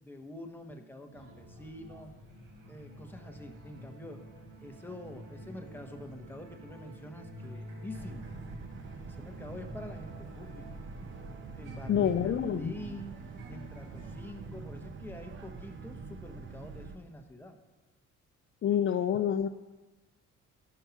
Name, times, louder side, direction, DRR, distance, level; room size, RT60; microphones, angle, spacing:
voice 1, 0.0-2.1 2.7-4.3 4.6-8.3 9.1-10.7 11.5-13.1 13.5-17.6, left 1 dB, 5° left, 3 dB, 1.3 m, -46 dB
sound 1, 1.1-14.6, equal, 90° right, 2.6 m, -48 dB
Boat Water vehicle, 7.9-17.0, right 4 dB, 40° right, 0.9 m, -45 dB
voice 2, 11.9-12.7 18.6-19.5, left 9 dB, 40° left, 8 dB, 0.5 m, -27 dB
12.0 x 5.6 x 5.8 m, 1.2 s
cardioid pair, 90°, 30 cm